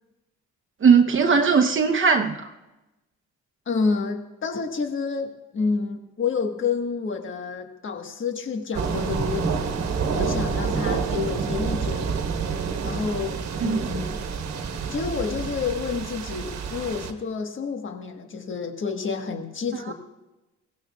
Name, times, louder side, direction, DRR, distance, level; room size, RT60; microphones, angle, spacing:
voice 1, 0.8-2.4 13.6-13.8 19.9-20.0, right 5 dB, 40° right, 5 dB, 0.9 m, -18 dB
voice 2, 3.7-9.7 10.1-12.1 12.8-14.2 14.9-19.9, left 5 dB, 40° left, 5 dB, 1.5 m, -29 dB
sound 1, 8.7-17.1, right 5 dB, 60° right, 1.3 m, -28 dB
21.0 x 17.5 x 2.4 m, 1.0 s
cardioid pair, 90°, 30 cm